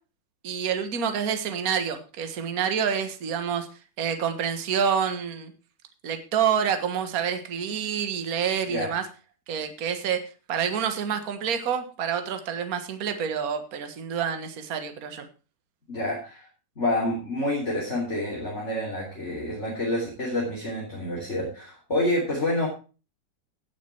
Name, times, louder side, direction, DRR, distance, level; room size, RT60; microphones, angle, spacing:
voice 1, 0.4-3.7 4.0-5.5 6.0-9.0 9.5-10.2 10.5-15.3, right 7 dB, 45° right, 7 dB, 1.1 m, -27 dB
voice 2, 15.9-16.5 16.8-22.7, left 1 dB, 20° left, -4 dB, 3.6 m, -28 dB
17.0 x 6.6 x 4.5 m, 0.34 s
omnidirectional pair, 3.8 m